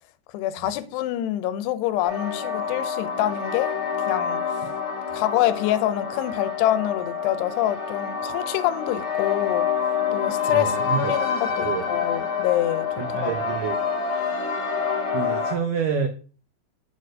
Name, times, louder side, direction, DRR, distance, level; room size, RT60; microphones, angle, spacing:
voice 1, 0.3-3.7 4.1-4.6 5.1-9.7 10.1-13.3, left 13 dB, 85° left, 2.7 m, -26 dB
sound 1, 2.0-15.6, left 6 dB, 40° left, 1.9 m, -27 dB
voice 2, 10.5-11.1 11.6-11.8 13.0-13.8 15.1-16.1, right 7 dB, 85° right, 1.8 m, -28 dB
7.2 x 4.2 x 6.2 m
omnidirectional pair, 4.7 m